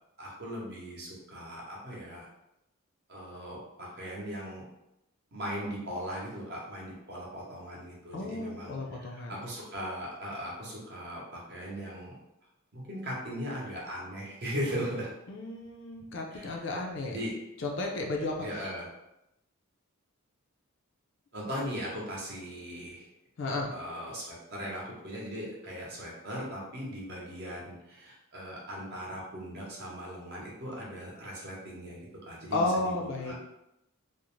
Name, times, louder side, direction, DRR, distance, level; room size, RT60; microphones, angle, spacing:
voice 1, 0.2-2.3 3.1-4.6 5.3-12.1 12.7-15.1 16.3-16.6 17.1-17.3 18.4-18.9 21.3-23.1 23.7-33.4, equal, 45° right, -4 dB, 0.7 m, -39 dB
voice 2, 8.1-9.3 15.3-17.2 17.6-18.5 23.4-23.7 32.5-33.5, left 2 dB, 55° left, 0 dB, 0.4 m, -33 dB
2.5 x 2.0 x 3.0 m, 0.86 s
head